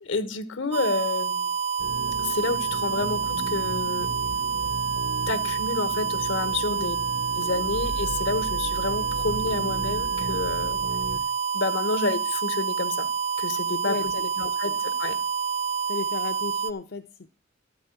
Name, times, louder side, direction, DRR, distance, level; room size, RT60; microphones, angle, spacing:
voice 1, 0.0-1.5 2.2-4.1 5.3-7.0 7.4-10.8 11.5-13.1 13.4-14.0 14.4-15.2, left 3 dB, 70° left, 11 dB, 1.1 m, -29 dB
sound 1, 0.7-16.7, right 6 dB, 35° right, 0.5 m, -28 dB
sound 2, 1.8-11.2, right 1 dB, 85° right, 1.1 m, -36 dB
voice 2, 13.8-14.8 15.9-17.3, left 4 dB, 55° left, 4 dB, 0.6 m, -35 dB
12.5 x 4.8 x 8.8 m, 0.40 s
head